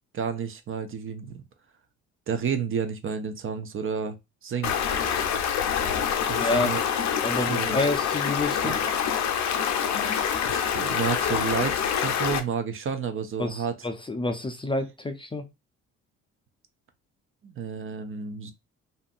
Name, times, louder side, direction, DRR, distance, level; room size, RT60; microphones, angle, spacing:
voice 1, 0.1-1.4 2.3-4.2 4.4-4.7 6.3-6.8 7.5-7.8 8.6-8.7 10.4-13.8 17.4-18.5, right 6 dB, 40° right, 0.6 m, -31 dB
Stream, 4.6-12.4, left 8 dB, 60° left, 0.6 m, -26 dB
voice 2, 6.3-6.7 7.2-8.8 13.4-15.5, left 2 dB, 15° left, 0.5 m, -29 dB
2.6 x 2.5 x 2.4 m
supercardioid pair, 65°, 32 cm